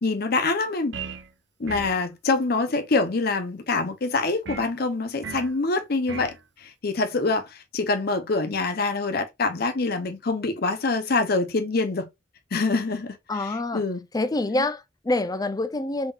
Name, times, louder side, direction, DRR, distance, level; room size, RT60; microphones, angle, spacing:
voice 1, 0.0-1.0 1.6-6.4 6.6-12.0 12.5-14.1 14.5-14.6, left 3 dB, 55° left, 0.7 m, -25 dB
sound 1, 0.9-1.3 1.7-2.0 4.5-4.7 5.2-5.5 6.1-6.4, right 5 dB, 70° right, 0.6 m, -36 dB
voice 2, 13.3-13.8 14.1-16.1, left 2 dB, 20° left, 0.5 m, -26 dB
3.6 x 3.6 x 2.4 m
head